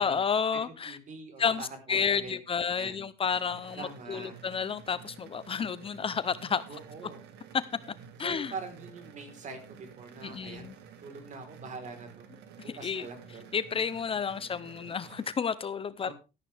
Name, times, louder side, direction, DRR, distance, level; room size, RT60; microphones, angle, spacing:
voice 1, 0.0-1.0 1.4-6.6 7.5-7.6 8.2-8.5 10.2-10.7 12.6-13.1 13.5-16.1, left 6 dB, 35° left, 0.7 m, -31 dB
voice 2, 0.8-3.0 3.8-4.4 6.7-7.2 8.2-10.7 11.0-12.3 12.6-13.4 14.1-14.5 16.0-16.1, right 4 dB, 45° right, 4.0 m, -44 dB
sound 1, 3.2-15.3, right 7 dB, 85° right, 2.0 m, -51 dB
13.0 x 11.0 x 3.4 m
cardioid pair, 110°, 17 cm